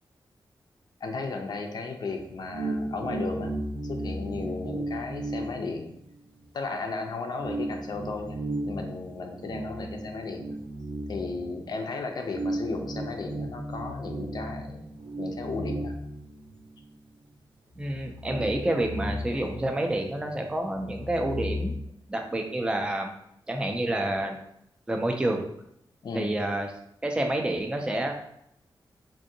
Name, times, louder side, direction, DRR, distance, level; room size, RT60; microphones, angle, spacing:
voice 1, 1.0-3.5 3.9-5.9 6.5-8.4 8.6-10.6 11.1-14.9 15.2-15.9 26.0-26.3, left 3 dB, 55° left, 4 dB, 0.4 m, -35 dB
sound 1, 2.1-6.4 6.8-6.9 7.3-11.8 12.3-16.9 17.3-17.4 17.8-20.3 20.5-21.7, right 1 dB, 90° right, 0.4 m, -35 dB
voice 2, 17.8-21.7 22.1-23.1 23.5-24.4 24.9-25.4 26.1-26.7 27.0-28.1, right 1 dB, 10° right, 3 dB, 0.3 m, -28 dB
3.6 x 2.5 x 2.6 m, 0.74 s
wide cardioid pair, 175°, 8 cm